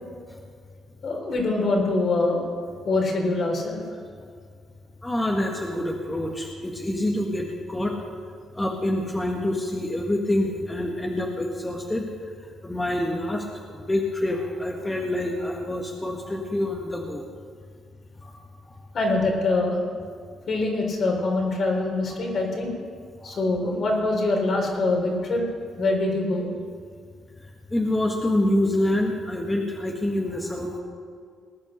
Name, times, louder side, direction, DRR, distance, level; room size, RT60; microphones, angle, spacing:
voice 1, 1.0-2.4 2.8-3.8 18.9-19.8 20.5-22.7 23.2-25.4 25.8-26.4, left 2 dB, 55° left, 0 dB, 4.1 m, -24 dB
voice 2, 5.0-7.9 8.5-12.0 12.6-17.2 18.2-18.4 18.7-18.8 23.2-23.4 27.7-30.8, left 1 dB, 15° left, 0 dB, 1.8 m, -26 dB
20.0 x 9.3 x 6.7 m, 2.1 s
cardioid pair, 90°, 0 cm